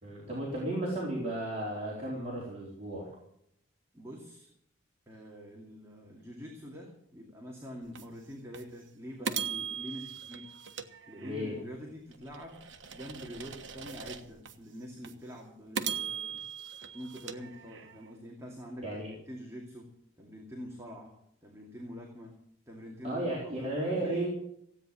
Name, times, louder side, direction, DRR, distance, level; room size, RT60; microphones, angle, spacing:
voice 1, 0.0-3.1 11.2-11.6 18.8-19.1 23.0-24.3, right 1 dB, 30° right, -5 dB, 4.1 m, -34 dB
voice 2, 3.9-4.5 5.1-10.5 11.1-16.4 16.9-19.9 20.2-21.2 21.4-22.4 22.7-24.3, equal, 15° right, -1 dB, 2.4 m, -45 dB
sound 1, 8.0-8.1 8.5-8.6 9.2-11.6 12.1-14.5 15.0-15.1 15.8-18.1, right 7 dB, 60° right, 1.3 m, -39 dB
16.5 x 9.3 x 7.6 m, 0.72 s
head